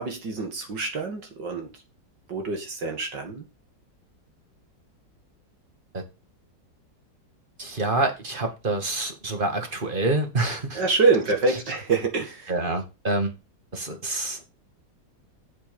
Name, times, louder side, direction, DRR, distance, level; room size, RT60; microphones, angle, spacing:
voice 1, 0.0-1.8 2.3-3.4 10.7-12.5, right 4 dB, 70° right, 2.9 m, -25 dB
voice 2, 7.6-10.8 12.5-13.4 13.7-14.4, right 2 dB, 25° right, 2.2 m, -27 dB
8.4 x 7.8 x 5.4 m
omnidirectional pair, 2.0 m